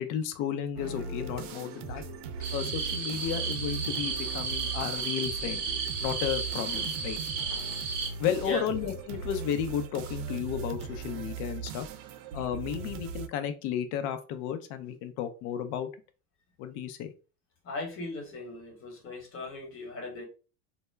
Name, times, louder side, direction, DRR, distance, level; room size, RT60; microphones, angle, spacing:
voice 1, 0.0-2.0 2.5-5.6 6.0-7.2 8.2-11.9 12.3-15.9 16.6-17.1, left 9 dB, 50° left, 9 dB, 0.5 m, -33 dB
Guitar, 0.8-8.5, left 2 dB, ahead, 0.7 m, -52 dB
sound 1, 0.8-13.3, right 6 dB, 80° right, 0.5 m, -39 dB
sound 2, 2.4-8.1, right 5 dB, 40° right, 0.8 m, -33 dB
voice 2, 17.6-20.2, left 2 dB, 35° left, 3 dB, 1.2 m, -37 dB
2.1 x 2.0 x 3.3 m, 0.33 s
supercardioid pair, 110°, 37 cm